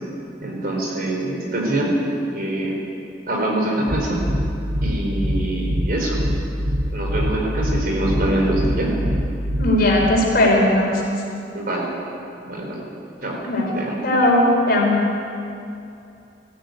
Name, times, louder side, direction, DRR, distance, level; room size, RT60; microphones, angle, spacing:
voice 1, 0.4-2.0 2.3-2.7 3.3-4.2 4.8-6.2 6.9-8.9 11.5-11.9 12.4-12.8 13.2-13.4 13.8-14.0, right 1 dB, 50° right, -1 dB, 4.5 m, -24 dB
sound 1, 3.9-10.2, equal, 80° right, 3.6 m, -24 dB
voice 2, 9.6-11.0 13.5-13.7 14.0-15.0, left 1 dB, 55° left, -1 dB, 4.6 m, -17 dB
20.0 x 14.0 x 9.3 m, 2.6 s
head